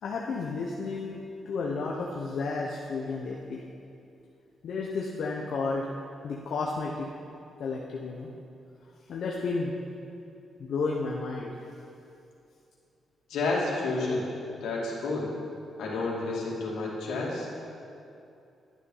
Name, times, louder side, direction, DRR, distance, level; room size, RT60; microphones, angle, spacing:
voice 1, 0.0-3.6 4.6-5.9 6.2-7.1 7.6-8.3 9.1-9.7 10.6-11.5, left 4 dB, 70° left, -2 dB, 1.0 m, -32 dB
voice 2, 13.3-14.3 14.6-15.3 15.8-17.6, left 3 dB, 90° left, -4 dB, 2.6 m, -30 dB
11.0 x 9.5 x 5.6 m, 2.6 s
cardioid pair, 70°, 0 cm